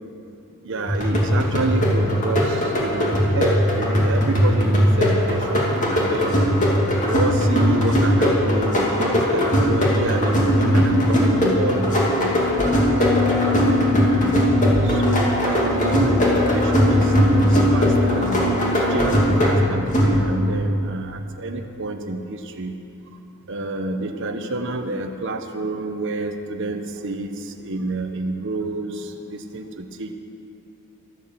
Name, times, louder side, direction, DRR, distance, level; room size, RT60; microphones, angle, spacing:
voice 1, 0.6-6.5 7.0-12.3 13.8-14.4 14.8-22.7 23.5-30.1, right 2 dB, 55° right, 4 dB, 0.8 m, -28 dB
sound 1, 0.9-20.5, equal, 35° left, 2.6 m, -19 dB
sound 2, 7.5-20.3, left 3 dB, 15° right, 1.3 m, -27 dB
13.0 x 13.0 x 7.5 m, 2.8 s
head